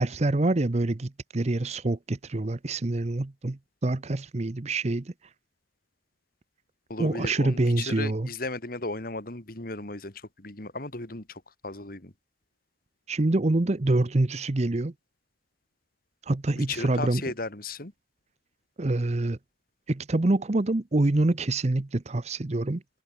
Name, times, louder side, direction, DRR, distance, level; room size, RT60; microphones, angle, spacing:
voice 1, 0.0-5.1 7.0-8.3 13.1-14.9 16.3-17.2 18.8-19.4 19.9-22.8, right 2 dB, 35° right, 0.7 m, -26 dB
voice 2, 6.9-12.1 16.6-17.9, left 2 dB, 50° left, 2.6 m, -35 dB
head